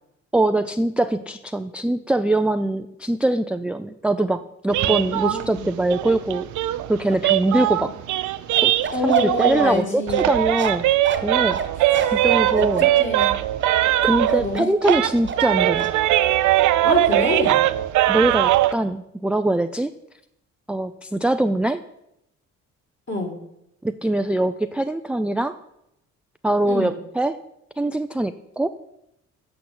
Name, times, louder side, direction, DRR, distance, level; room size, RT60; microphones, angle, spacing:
voice 1, 0.3-6.5 6.9-7.9 8.6-8.7 9.0-9.8 10.3-10.9 11.2-11.6 12.1-12.9 14.0-15.9 18.1-19.9 20.7-21.8 23.8-25.6 26.4-27.4 27.8-28.9, right 1 dB, 5° right, 11 dB, 0.4 m, -22 dB
sound 1, 4.7-9.8 10.1-14.6 14.8-18.7, right 14 dB, 80° right, 0.6 m, -21 dB
voice 2, 4.8-5.8 7.7-7.9 8.9-10.3 12.0-12.1 12.5-13.3 14.2-14.7 16.8-17.7 23.1-23.4 26.7-27.0, left 2 dB, 40° left, 1 dB, 2.6 m, -27 dB
Bark, 8.5-15.5 15.8-16.0, right 6 dB, 40° right, 1.2 m, -29 dB
8.4 x 5.8 x 7.9 m, 0.82 s
cardioid pair, 90°, 30 cm